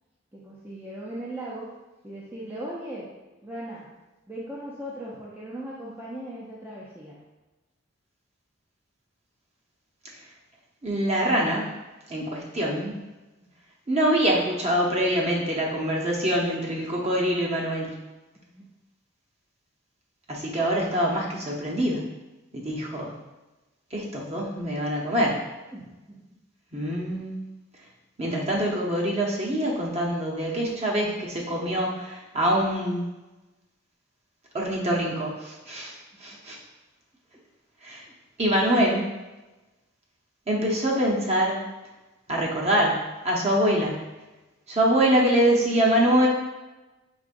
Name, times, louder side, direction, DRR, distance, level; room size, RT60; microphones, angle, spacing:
voice 1, 0.3-1.7 2.0-3.1 3.4-3.9 4.3-7.2 13.4-13.5 18.3-18.7 25.7-26.2, right 1 dB, 10° right, -7 dB, 0.5 m, -38 dB
voice 2, 10.8-11.7 12.1-13.0 13.9-18.0 20.3-22.1 22.5-23.1 23.9-25.4 26.7-27.4 28.2-33.0 34.5-35.9 36.2-36.6 37.8-38.0 38.4-39.1 40.5-41.6 42.3-44.0 44.7-46.3, right 1 dB, 35° right, -3 dB, 0.8 m, -24 dB
5.0 x 3.7 x 2.5 m, 1.1 s
head